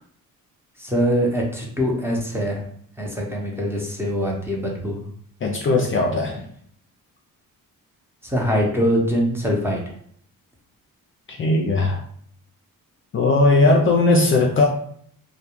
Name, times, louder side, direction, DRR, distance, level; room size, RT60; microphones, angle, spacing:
voice 1, 0.8-2.6 3.0-5.0 8.2-9.8, equal, 5° right, -2 dB, 0.8 m, -23 dB
voice 2, 5.4-6.4 11.3-12.0 13.1-14.6, left 2 dB, 35° left, 0 dB, 0.4 m, -18 dB
2.2 x 2.2 x 2.9 m, 0.62 s
cardioid pair, 80°, 35 cm